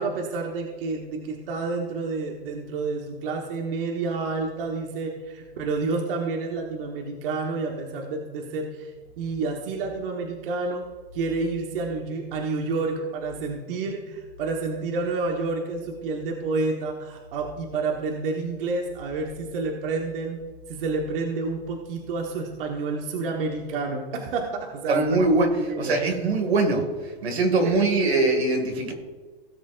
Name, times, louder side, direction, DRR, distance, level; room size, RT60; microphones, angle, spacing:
voice 1, 0.0-8.9 9.2-10.9 11.1-20.4 20.7-25.2 25.7-26.0 27.6-27.7, right 3 dB, 60° right, 1 dB, 1.5 m, -29 dB
voice 2, 24.9-26.9 27.2-28.9, right 2 dB, 85° right, 4 dB, 2.2 m, -22 dB
17.5 x 7.4 x 2.6 m, 1.4 s
hypercardioid pair, 125°, 31 cm